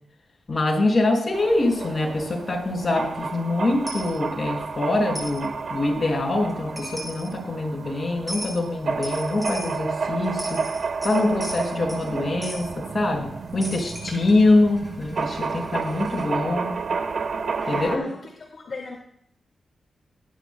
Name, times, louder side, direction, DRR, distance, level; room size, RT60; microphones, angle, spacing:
voice 1, 0.5-10.6 11.0-16.7 17.7-18.0, left 2 dB, 45° left, 0 dB, 5.8 m, -24 dB
sound 1, 1.3-18.0, right 4 dB, 70° right, 1.1 m, -31 dB
Coin (dropping), 3.9-4.1 5.1-5.4 6.5-6.6 6.8-7.3 8.3-8.6 9.0-9.8 10.2-12.1 12.4-12.7 13.6-16.2, equal, 5° right, 5.7 m, -37 dB
voice 2, 17.6-19.0, left 3 dB, 60° left, 0 dB, 2.1 m, -36 dB
22.5 x 11.0 x 2.2 m, 0.69 s
cardioid pair, 55°, 0 cm